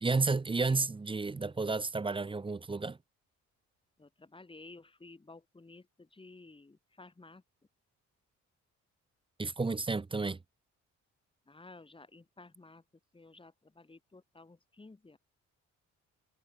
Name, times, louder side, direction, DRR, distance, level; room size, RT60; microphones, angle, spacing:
voice 1, 0.0-3.0 9.4-10.4, right 3 dB, 15° right, 0.7 m, -31 dB
voice 2, 0.6-0.9 4.0-7.4 11.5-12.8 13.1-15.2, left 3 dB, 15° left, 2.6 m, -54 dB
cardioid pair, 90°, 30 cm